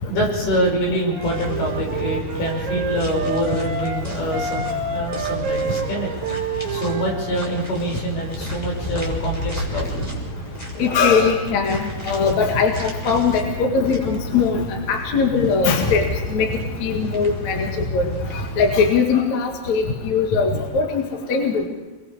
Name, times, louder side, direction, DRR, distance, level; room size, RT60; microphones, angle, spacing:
voice 1, 0.0-6.1 6.7-10.2, right 1 dB, 70° left, 0 dB, 7.8 m, -25 dB
Wind instrument woodwind instrument, 1.1-4.0 4.3-7.5, right 3 dB, 75° right, 4.8 m, -28 dB
sound 1, 1.2-18.9, equal, 10° left, 4.1 m, -31 dB
voice 2, 10.8-11.8 12.0-14.6 14.9-16.5 16.8-17.7 17.9-18.1 18.6-21.0 21.3-21.7, left 5 dB, 50° left, 2 dB, 2.9 m, -20 dB
28.5 x 21.5 x 4.9 m, 1.1 s
omnidirectional pair, 4.7 m